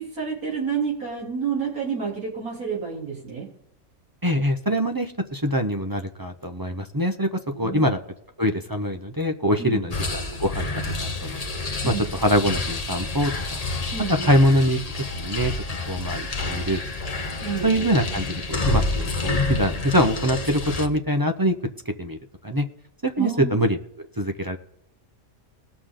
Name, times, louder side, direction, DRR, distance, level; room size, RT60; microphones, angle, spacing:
voice 1, 0.0-3.5 7.5-7.9 9.6-9.8 11.8-12.1 13.9-14.3 17.4-17.9 23.2-23.6, right 6 dB, 85° right, -4 dB, 4.1 m, -30 dB
voice 2, 4.2-8.0 8.4-11.4 11.8-13.6 14.1-14.8 15.2-15.6 15.9-16.8 17.6-21.6 21.9-22.2 22.4-22.7 23.0-24.6, equal, 25° right, 6 dB, 0.5 m, -24 dB
sound 1, 9.9-20.9, left 3 dB, 30° left, 0.9 m, -28 dB
20.0 x 6.7 x 3.8 m, 0.75 s
omnidirectional pair, 1.5 m